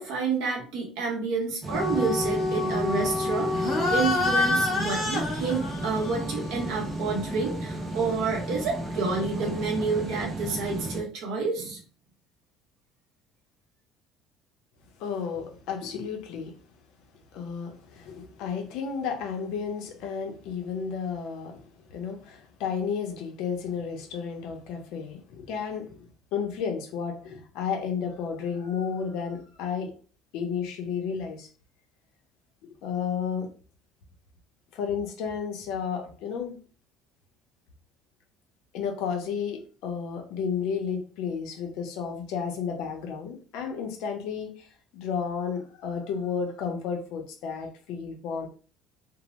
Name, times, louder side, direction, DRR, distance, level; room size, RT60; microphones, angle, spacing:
voice 1, 0.0-11.8, right 4 dB, 75° right, 0.8 m, -29 dB
sound 1, 1.6-11.0, right 1 dB, 20° right, 0.4 m, -34 dB
sound 2, 1.7-7.6, left 2 dB, 20° left, 0.9 m, -28 dB
voice 2, 15.0-16.5 17.3-29.9 30.3-31.5 32.6-33.5 34.7-36.6 38.7-44.7 44.9-48.5, left 6 dB, 70° left, 0.7 m, -32 dB
2.7 x 2.0 x 3.0 m
cardioid pair, 160°, 0 cm